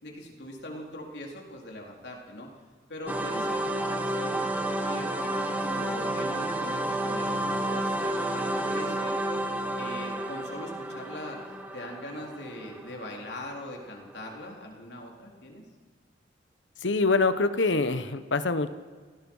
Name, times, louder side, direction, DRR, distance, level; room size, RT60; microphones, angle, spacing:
voice 1, 0.0-2.5 2.9-4.4 4.8-9.2 9.8-11.4 11.7-15.7, left 1 dB, 65° left, 0 dB, 4.0 m, -41 dB
sound 1, 3.1-13.7, right 1 dB, 10° right, 1.6 m, -31 dB
voice 2, 16.8-18.7, left 3 dB, 90° left, 12 dB, 1.2 m, -25 dB
28.5 x 18.0 x 5.7 m, 1.5 s
head